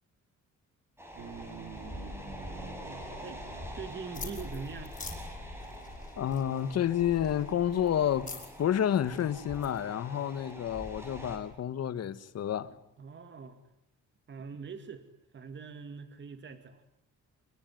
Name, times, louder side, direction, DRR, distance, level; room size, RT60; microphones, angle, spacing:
sound 1, 1.0-11.4, equal, 10° right, 7.3 m, -45 dB
sound 2, 1.2-6.9, right 5 dB, 70° right, 3.8 m, -49 dB
voice 1, 3.7-5.0 13.0-13.6 14.3-15.0 15.3-16.8, right 5 dB, 35° right, 2.3 m, -43 dB
sound 3, 4.1-9.8, left 4 dB, 25° left, 6.6 m, -46 dB
voice 2, 6.2-8.3 8.6-12.7, left 10 dB, 55° left, 1.5 m, -29 dB
27.0 x 22.5 x 9.3 m
cardioid pair, 165°, 31 cm